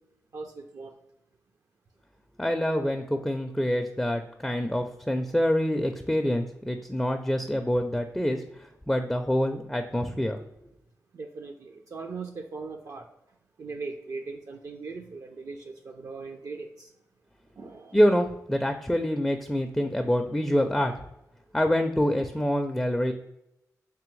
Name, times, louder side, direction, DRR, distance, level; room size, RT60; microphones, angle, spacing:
voice 1, 0.3-0.9 11.1-13.1 13.6-16.9 17.6-18.0, right 4 dB, 60° right, 3 dB, 0.4 m, -39 dB
voice 2, 2.4-8.4 8.9-10.4 17.9-20.9 21.5-23.1, equal, 5° left, 6 dB, 0.4 m, -26 dB
3.4 x 3.4 x 3.1 m, 0.84 s
cardioid pair, 50°, 7 cm